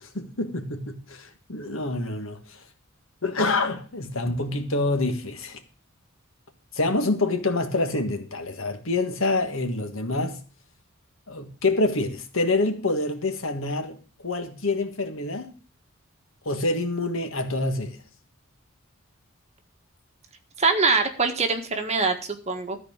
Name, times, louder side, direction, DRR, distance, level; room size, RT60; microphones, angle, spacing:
voice 1, 0.0-2.6 3.2-5.6 6.7-10.4 11.3-14.0 14.2-15.5 16.5-18.0, left 2 dB, 70° left, 1.7 m, -26 dB
voice 2, 20.6-22.8, right 4 dB, 30° right, 1.6 m, -23 dB
13.5 x 4.7 x 8.8 m
head